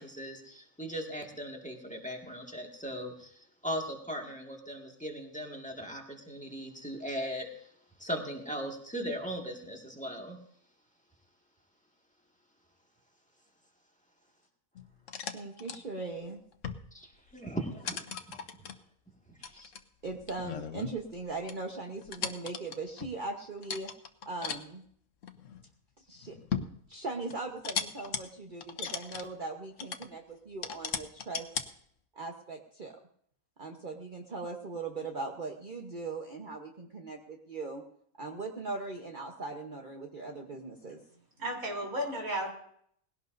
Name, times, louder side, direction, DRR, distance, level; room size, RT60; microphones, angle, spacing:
voice 1, 0.0-7.5 8.0-10.4 16.9-18.0 19.3-19.6, equal, 5° left, 0 dB, 1.8 m, -38 dB
sound 1, 14.8-15.8 16.5-17.0 17.3-17.5 17.8-18.8 19.4-21.2 21.5-21.6 22.0-23.1 23.6-24.6 25.2-25.7 26.2-26.8 27.3-28.2 28.6-29.2 29.8-30.1 30.6-31.7, left 7 dB, 70° left, 1.3 m, -37 dB
voice 2, 15.3-16.4 19.5-19.7 20.0-23.9 24.3-24.8 26.0-26.4 26.9-31.5 32.1-32.9 33.6-37.8 38.2-41.0, right 3 dB, 40° right, 1 dB, 1.2 m, -39 dB
voice 3, 41.4-42.5, equal, 90° right, 0 dB, 4.1 m, -33 dB
19.5 x 17.0 x 2.7 m, 0.65 s
omnidirectional pair, 1.4 m